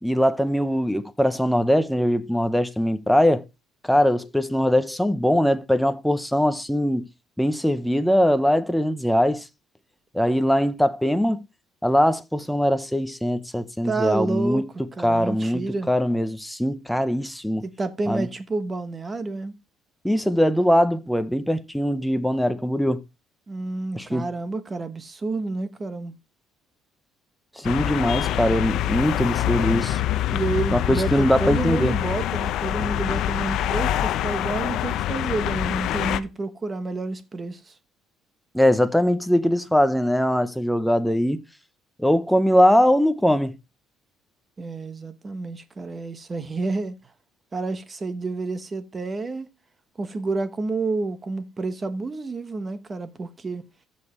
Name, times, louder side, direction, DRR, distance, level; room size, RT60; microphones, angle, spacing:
voice 1, 0.0-3.4 3.9-7.0 7.4-9.4 10.1-11.4 11.8-14.6 15.0-15.6 15.9-17.6 18.1-18.3 20.0-23.0 24.0-24.2 27.6-30.0 30.7-31.9 38.5-41.4 42.0-43.5, equal, ahead, 0.7 m, -21 dB
voice 2, 13.8-14.6 15.0-15.9 17.6-19.5 23.5-26.1 30.3-37.7 44.6-46.9 47.5-49.5 50.0-53.6, right 3 dB, 20° right, 1.1 m, -29 dB
sound 1, 27.6-36.2, left 12 dB, 65° left, 0.6 m, -25 dB
15.0 x 5.5 x 3.1 m
cardioid pair, 140°, 0 cm